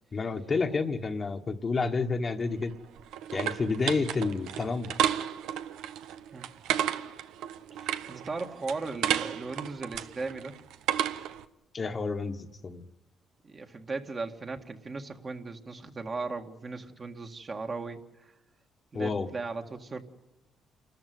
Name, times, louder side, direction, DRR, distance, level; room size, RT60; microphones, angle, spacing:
voice 1, 0.1-2.7 3.3-4.9 11.7-12.8 18.9-19.3, left 4 dB, 35° left, 6 dB, 1.4 m, -30 dB
sound 1, 2.4-11.4, right 10 dB, 90° right, 0.8 m, -33 dB
voice 2, 7.7-10.5 13.4-18.3 18.9-20.0, right 3 dB, 35° right, 4 dB, 1.9 m, -37 dB
28.0 x 13.5 x 9.3 m, 0.95 s
cardioid pair, 90°, 0 cm